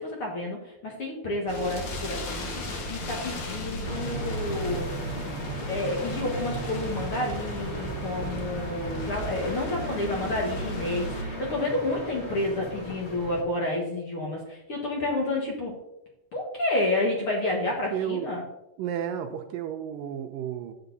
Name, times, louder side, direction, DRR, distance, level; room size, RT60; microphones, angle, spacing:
voice 1, 0.0-2.5 2.9-4.9 5.7-15.7 16.3-18.4, left 2 dB, 50° left, -1 dB, 1.8 m, -30 dB
sound 1, 1.5-11.2, left 1 dB, 75° left, 1.0 m, -36 dB
sound 2, 3.8-13.4, right 1 dB, 25° left, 1.4 m, -36 dB
voice 2, 17.6-18.3 18.8-20.7, right 9 dB, 80° right, 5 dB, 2.2 m, -32 dB
10.5 x 8.0 x 4.0 m, 0.86 s
omnidirectional pair, 4.3 m